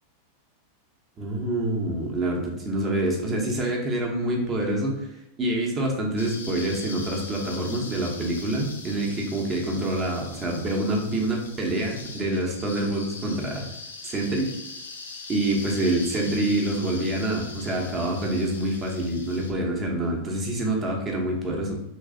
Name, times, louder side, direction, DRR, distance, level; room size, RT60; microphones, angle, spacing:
voice 1, 1.2-5.0 5.4-13.6 14.0-14.5 15.3-21.8, right 1 dB, 25° right, -1 dB, 1.0 m, -26 dB
sound 1, 6.2-19.5, left 3 dB, 70° left, 0.5 m, -41 dB
3.2 x 3.2 x 3.8 m, 0.85 s
figure-of-eight pair, 90°, 0 cm